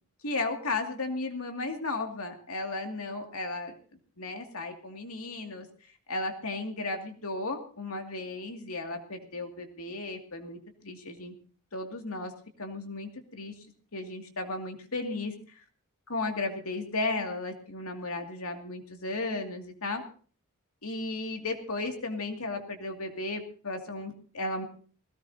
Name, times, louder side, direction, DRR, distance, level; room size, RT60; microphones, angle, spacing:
voice 1, 0.2-3.7 4.2-5.7 6.1-10.6 10.8-11.3 11.7-12.3 12.6-13.5 13.9-15.3 16.1-20.0 20.8-24.6, left 2 dB, 80° left, 4 dB, 2.4 m, -34 dB
20.0 x 17.0 x 2.8 m, 0.41 s
head